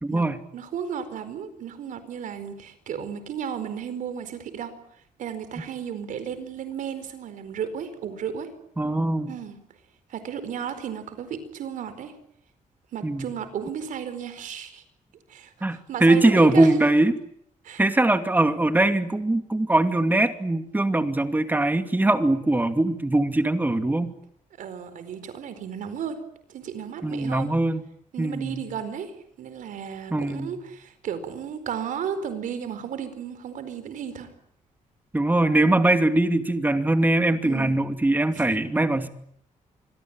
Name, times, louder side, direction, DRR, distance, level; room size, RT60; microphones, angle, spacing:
voice 1, 0.0-0.4 8.8-9.3 13.0-13.3 15.6-17.2 17.8-24.1 27.0-27.8 28.2-28.6 30.1-30.5 35.1-39.1, right 2 dB, 15° right, 8 dB, 2.6 m, -21 dB
voice 2, 0.5-4.7 5.2-8.5 9.3-9.6 10.1-12.1 12.9-14.8 15.3-16.7 17.6-17.8 24.6-26.2 26.5-27.5 28.1-29.1 29.4-34.3 37.4-37.8 38.3-38.6, right 8 dB, 85° right, 11 dB, 4.6 m, -34 dB
27.0 x 22.0 x 9.0 m, 0.70 s
cardioid pair, 110°, 13 cm